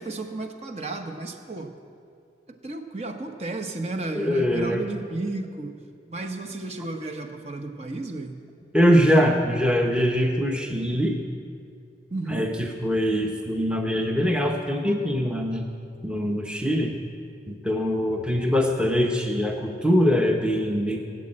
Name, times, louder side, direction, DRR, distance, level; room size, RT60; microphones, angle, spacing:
voice 1, 0.0-1.7 2.5-5.8 6.1-8.5 12.1-12.5, right 2 dB, 35° right, 5 dB, 0.9 m, -33 dB
voice 2, 4.1-4.8 8.7-11.2 12.3-15.6 16.0-17.0 17.5-21.0, equal, 5° right, 1 dB, 0.8 m, -23 dB
18.0 x 7.5 x 8.8 m, 2.4 s
head